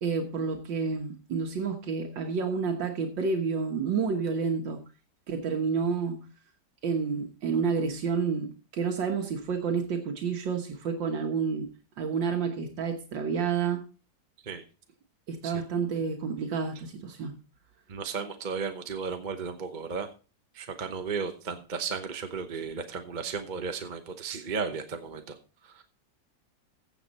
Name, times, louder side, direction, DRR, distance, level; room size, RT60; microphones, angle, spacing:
voice 1, 0.0-4.8 5.3-6.3 6.8-11.7 12.0-13.9 15.3-17.3, right 5 dB, 85° right, 4 dB, 2.0 m, -29 dB
voice 2, 17.9-20.1 20.5-25.4 25.6-25.8, right 5 dB, 35° right, 7 dB, 0.9 m, -34 dB
15.5 x 7.4 x 4.1 m, 0.35 s
omnidirectional pair, 1.9 m